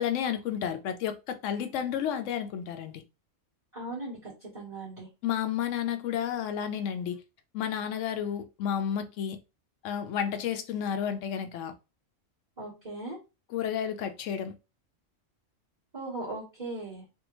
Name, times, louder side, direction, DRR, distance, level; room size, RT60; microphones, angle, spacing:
voice 1, 0.0-3.0 5.2-7.2 7.5-9.4 9.8-11.7 13.5-14.5, left 9 dB, 75° left, 0.9 m, -31 dB
voice 2, 3.7-5.1 12.6-13.2 15.9-17.0, right 2 dB, 35° right, 1.4 m, -38 dB
3.4 x 2.3 x 3.0 m
omnidirectional pair, 1.3 m